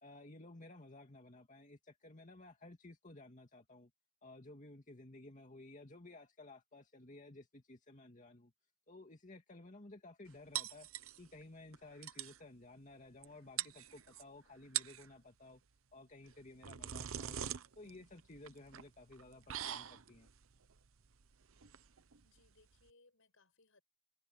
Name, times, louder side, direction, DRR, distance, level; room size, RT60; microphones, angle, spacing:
voice 1, 0.0-3.9 4.2-8.5 8.9-10.9 11.2-15.6 15.9-17.5 17.8-20.3, left 2 dB, 35° left, 2.3 m, -55 dB
sound 1, 10.5-11.4 11.7-11.8 12.0-12.4 13.2-13.3 13.6-14.2 14.6-15.1 16.3-22.9, right 11 dB, 75° right, 0.8 m, -43 dB
voice 2, 21.9-23.8, left 3 dB, 70° left, 6.7 m, -70 dB
head